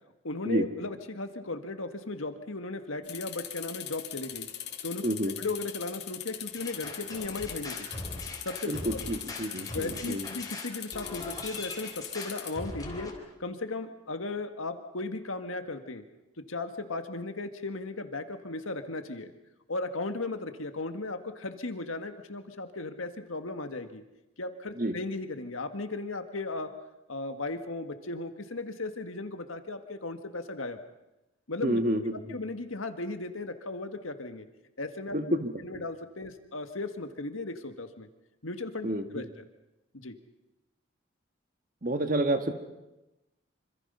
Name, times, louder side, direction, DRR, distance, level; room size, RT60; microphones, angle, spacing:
voice 1, 0.2-4.5 4.8-5.0 5.4-7.9 8.4-9.1 9.7-13.1 13.4-16.0 16.5-19.3 19.7-24.0 24.4-26.7 27.1-30.8 31.5-31.8 32.3-34.5 34.8-38.1 38.4-39.2 39.9-40.2, left 2 dB, 90° left, 7 dB, 1.8 m, -36 dB
sound 1, 3.0-12.5, left 11 dB, 55° left, 3.3 m, -41 dB
sound 2, 6.6-13.1, left 2 dB, 20° left, 3.6 m, -40 dB
voice 2, 8.7-10.3 24.8-24.9 31.6-32.0 35.1-35.8 38.8-39.0 41.8-42.5, right 1 dB, 40° right, 7 dB, 1.8 m, -29 dB
26.5 x 25.5 x 5.6 m, 0.98 s
head